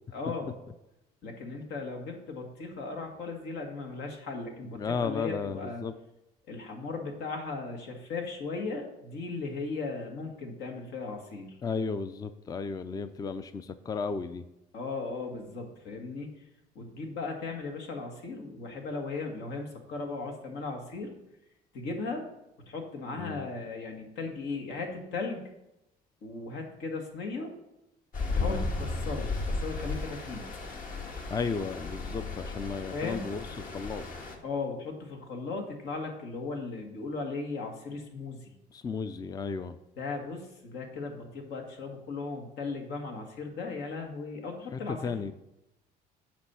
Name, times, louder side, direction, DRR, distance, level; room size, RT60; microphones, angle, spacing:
voice 1, 0.1-0.5 1.2-5.8 6.5-11.6 14.7-16.3 16.8-21.1 21.7-22.3 22.6-25.4 26.2-27.5 28.3-30.4 32.9-33.3 34.4-38.5 40.0-45.1, left 3 dB, 80° left, 3 dB, 1.9 m, -37 dB
voice 2, 4.7-5.9 11.6-14.5 23.2-23.5 28.3-28.7 31.3-34.0 38.7-39.8 44.7-45.3, left 5 dB, 20° left, 12 dB, 0.4 m, -34 dB
Stream, 28.1-34.4, left 3 dB, 55° left, 1.7 m, -34 dB
8.7 x 5.3 x 5.6 m, 0.90 s
cardioid pair, 110°, 17 cm